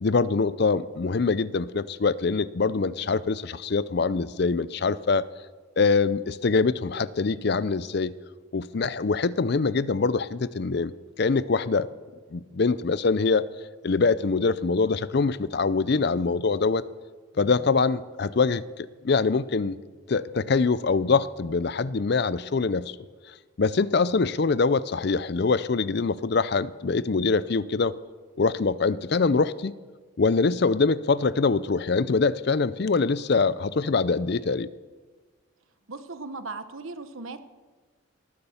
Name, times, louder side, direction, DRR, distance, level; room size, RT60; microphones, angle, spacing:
voice 1, 0.0-5.3 5.8-8.2 8.5-11.9 12.3-13.5 13.8-16.8 17.4-19.8 20.1-23.0 23.6-27.9 28.4-29.7 30.2-34.7, left 4 dB, 50° left, 17 dB, 0.5 m, -24 dB
voice 2, 35.9-37.4, right 3 dB, 75° right, 10 dB, 1.1 m, -37 dB
19.0 x 9.8 x 7.1 m, 1.4 s
head